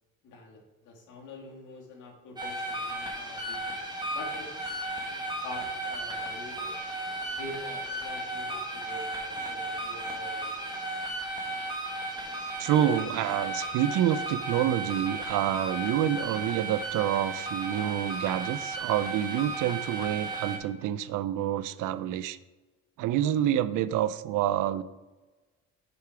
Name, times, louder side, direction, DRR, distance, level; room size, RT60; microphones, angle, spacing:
voice 1, 0.2-3.8 4.1-6.7 7.3-10.9, left 2 dB, 80° left, 0 dB, 1.9 m, -46 dB
sound 1, 2.4-20.6, right 2 dB, 15° right, 1.4 m, -35 dB
voice 2, 12.6-22.4 23.0-24.8, right 11 dB, 90° right, 15 dB, 0.4 m, -28 dB
6.9 x 4.7 x 4.6 m, 1.2 s
cardioid pair, 90°, 30 cm